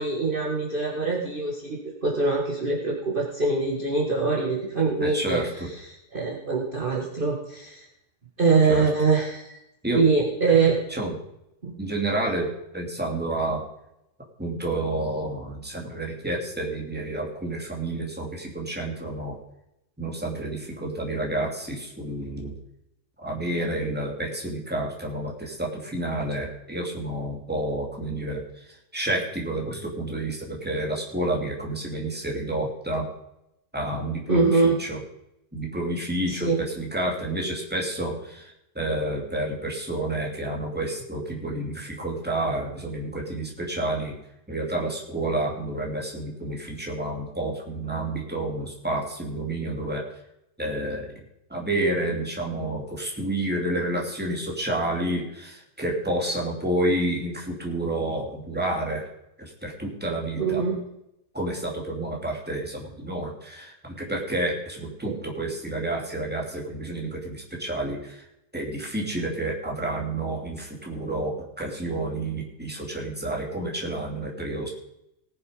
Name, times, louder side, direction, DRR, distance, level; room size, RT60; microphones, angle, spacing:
voice 1, 0.0-5.4 6.1-7.8 8.4-9.6 9.9-10.7 11.6-11.9 34.3-34.8 36.3-36.6 60.4-60.8 65.0-65.2, right 4 dB, 35° right, -3 dB, 2.1 m, -23 dB
voice 2, 5.0-5.7 8.7-8.9 9.8-10.1 10.9-11.1 11.8-13.6 14.4-19.4 20.0-22.5 23.2-33.1 33.7-35.0 35.5-44.1 44.5-50.0 50.6-51.1 51.5-59.1 59.4-60.6 61.3-68.2 68.5-74.7, right 1 dB, 5° right, -1 dB, 2.7 m, -29 dB
19.5 x 7.2 x 5.2 m, 0.83 s
omnidirectional pair, 1.7 m